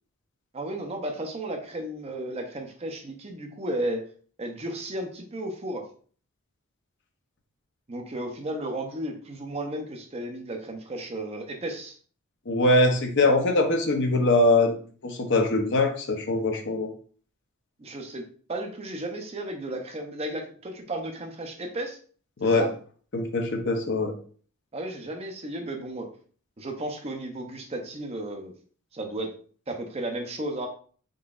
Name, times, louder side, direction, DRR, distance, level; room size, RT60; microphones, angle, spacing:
voice 1, 0.5-4.0 4.4-5.9 7.9-11.9 17.8-22.0 22.4-22.7 24.7-26.1 26.6-28.5 28.9-29.3 29.7-30.7, right 1 dB, 25° right, 3 dB, 0.6 m, -34 dB
voice 2, 12.5-14.7 15.0-16.9 22.4-22.7 23.1-24.1, left 2 dB, 55° left, 4 dB, 0.7 m, -22 dB
3.8 x 3.8 x 2.4 m, 0.44 s
head